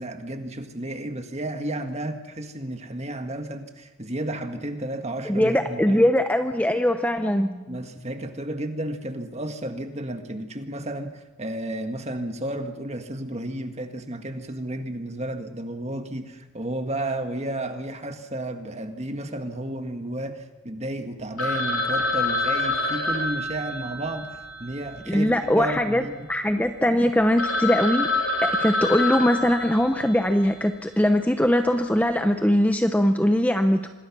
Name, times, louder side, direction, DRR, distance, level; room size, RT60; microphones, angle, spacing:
voice 1, 0.0-6.1 7.7-26.3, right 1 dB, 30° right, 6 dB, 1.8 m, -32 dB
voice 2, 5.3-7.6 25.1-26.0 26.3-28.1 28.4-33.8, left 1 dB, 5° left, 7 dB, 0.7 m, -21 dB
Telephone, 21.4-25.7 26.0-26.1 26.6-26.7 27.1-27.2 27.4-30.3, left 2 dB, 75° left, 3.2 m, -27 dB
26.5 x 20.5 x 6.1 m, 1.2 s
head